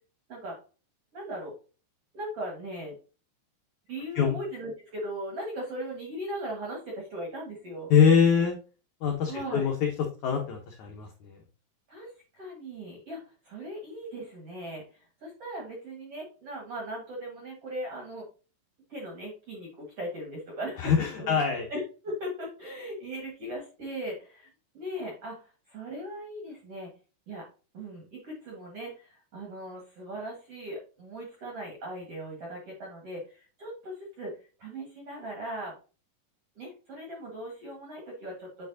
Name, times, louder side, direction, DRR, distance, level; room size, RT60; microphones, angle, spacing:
voice 1, 1.1-1.5 2.1-3.0 3.9-7.9 9.3-9.7 11.9-12.1 12.4-14.8 15.2-18.2 18.9-20.9 21.2-24.5 24.7-25.4 25.7-26.9 27.3-27.4 27.7-34.3 34.6-35.7 36.6-38.7, right 1 dB, 55° right, -1 dB, 1.8 m, -38 dB
voice 2, 7.9-8.6 9.0-9.9 10.2-11.4 20.8-21.6, left 7 dB, 80° left, 1 dB, 1.7 m, -24 dB
8.6 x 4.4 x 2.7 m, 0.35 s
omnidirectional pair, 4.8 m